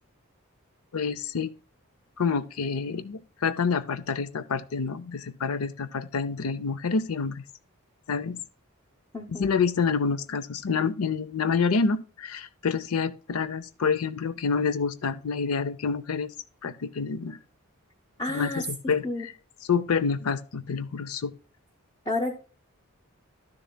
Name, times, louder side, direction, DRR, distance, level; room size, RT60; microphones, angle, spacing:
voice 1, 0.9-1.5 2.2-7.4 8.1-8.4 9.3-16.3 16.6-17.4 18.3-19.3 19.7-21.3, left 5 dB, 80° left, 0.6 m, -28 dB
voice 2, 9.1-9.5 18.2-18.6 19.0-19.3 22.1-22.4, left 2 dB, 20° left, 0.7 m, -30 dB
12.0 x 6.8 x 2.2 m
head